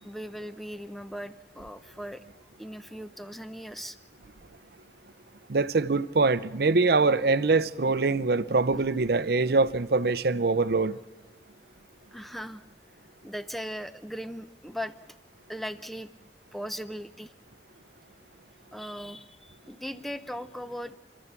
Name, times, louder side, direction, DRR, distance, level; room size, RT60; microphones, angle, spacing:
voice 1, 0.0-2.2 2.6-4.0 12.1-12.6 13.2-14.9 15.5-16.1 16.5-17.3 18.7-20.9, equal, ahead, 0.6 m, -38 dB
voice 2, 5.5-11.0, right 3 dB, 60° right, 0.6 m, -24 dB
29.5 x 12.5 x 8.2 m
head